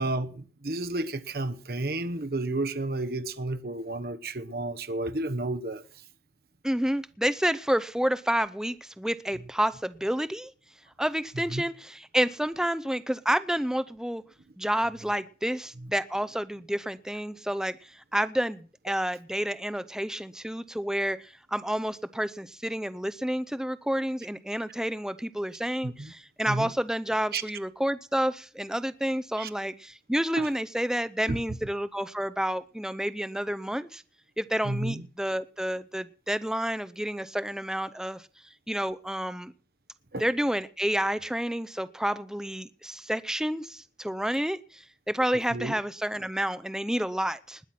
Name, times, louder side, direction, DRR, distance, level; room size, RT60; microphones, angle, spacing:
voice 1, 0.0-5.8 11.5-11.6 25.8-26.1 26.5-26.7 27.3-27.4 29.4-29.5 30.4-30.5 31.3-31.4 34.6-35.1 40.1-40.2 45.5-45.8, right 2 dB, 55° right, 1.0 m, -31 dB
voice 2, 6.6-10.5 11.0-14.2 14.6-34.0 34.4-38.2 38.7-39.5 40.2-47.6, equal, 5° right, 0.6 m, -29 dB
20.0 x 7.9 x 5.9 m
head